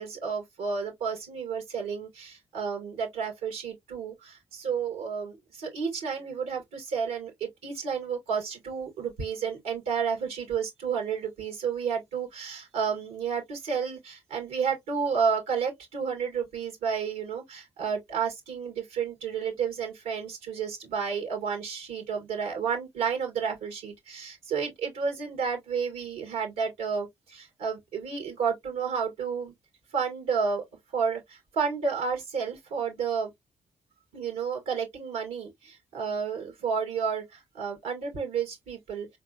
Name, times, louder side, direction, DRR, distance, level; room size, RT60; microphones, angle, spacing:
voice 1, 0.0-29.5 29.9-30.6 30.9-33.3 34.1-39.1, right 6 dB, 90° right, 1.8 m, -31 dB
4.3 x 3.3 x 2.4 m
supercardioid pair, 50°, 14 cm